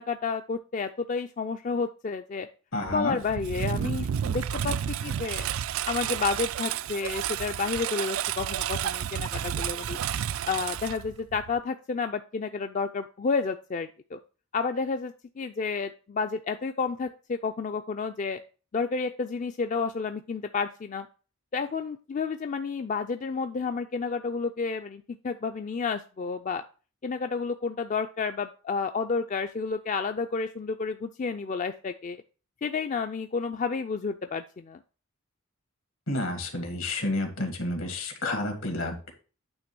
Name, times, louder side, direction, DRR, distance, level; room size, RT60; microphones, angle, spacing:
voice 1, 0.0-2.5 2.9-4.8 5.0-5.4 5.9-10.0 10.5-14.2 14.5-18.4 18.7-21.1 21.5-26.6 27.0-32.2 32.6-34.8, left 5 dB, 35° left, 7 dB, 0.4 m, -30 dB
voice 2, 2.7-3.2 36.1-39.1, left 2 dB, 75° left, 5 dB, 2.0 m, -30 dB
Engine, 2.9-11.6, right 9 dB, 75° right, 0.3 m, -31 dB
8.8 x 3.2 x 6.0 m, 0.36 s
head